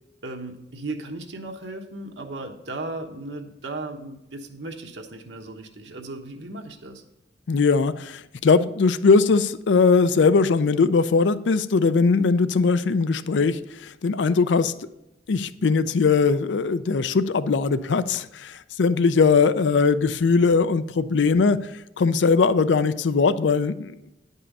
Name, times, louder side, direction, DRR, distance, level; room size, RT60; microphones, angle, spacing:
voice 1, 0.2-7.0, right 2 dB, 75° right, 3 dB, 1.2 m, -36 dB
voice 2, 7.5-14.7 15.3-24.1, left 4 dB, 85° left, 14 dB, 0.5 m, -20 dB
9.9 x 5.4 x 5.3 m, 0.90 s
head